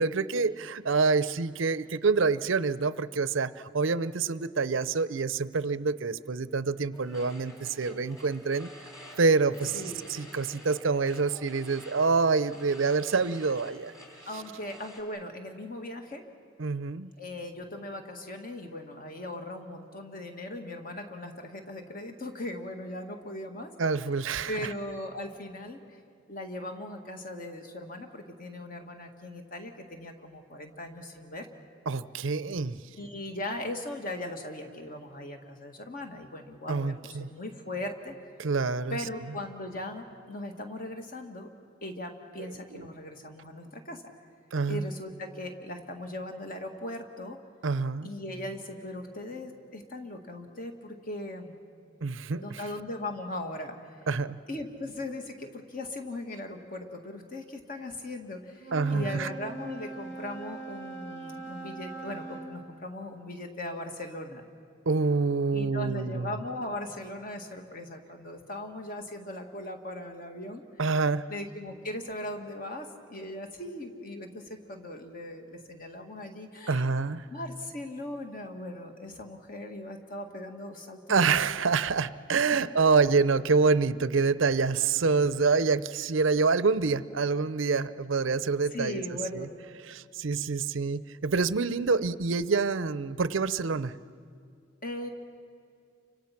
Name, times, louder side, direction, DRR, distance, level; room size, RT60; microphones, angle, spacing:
voice 1, 0.0-8.7 9.2-9.8 10.1-13.9 16.6-17.1 23.8-24.5 31.9-32.8 36.7-37.3 38.4-39.0 42.8-42.9 44.5-44.8 47.6-48.1 52.0-52.6 54.1-54.4 58.7-59.3 64.9-66.3 70.8-71.3 76.7-77.2 81.1-89.0 89.3-89.5 89.9-94.0, right 4 dB, 70° right, 15 dB, 0.6 m, -26 dB
sound 1, 6.9-15.0, left 1 dB, 15° left, 3.3 m, -50 dB
voice 2, 9.7-10.1 14.3-16.3 17.2-23.7 24.5-25.8 26.3-31.5 33.0-38.2 38.9-41.5 41.8-44.0 44.7-47.4 48.0-51.6 52.3-53.8 54.5-64.4 65.5-70.6 71.3-77.0 77.3-81.3 88.7-89.5 94.8-95.1, left 1 dB, 45° left, 4 dB, 2.0 m, -39 dB
Wind instrument woodwind instrument, 58.6-62.5, right 3 dB, 65° left, 3.0 m, -41 dB
30.0 x 25.5 x 5.9 m, 2.4 s
head